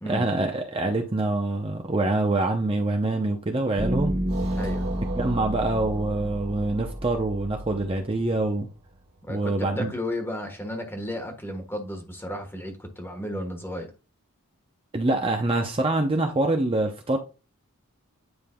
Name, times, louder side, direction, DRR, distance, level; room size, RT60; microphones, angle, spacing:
voice 1, 0.1-4.1 5.2-8.7 9.3-9.9 14.9-17.2, right 2 dB, 25° right, 0.6 m, -25 dB
sound 1, 3.8-9.0, equal, 45° right, 2.2 m, -30 dB
voice 2, 4.5-4.9 9.2-13.9, left 1 dB, 10° left, 1.3 m, -33 dB
9.7 x 5.2 x 2.3 m
head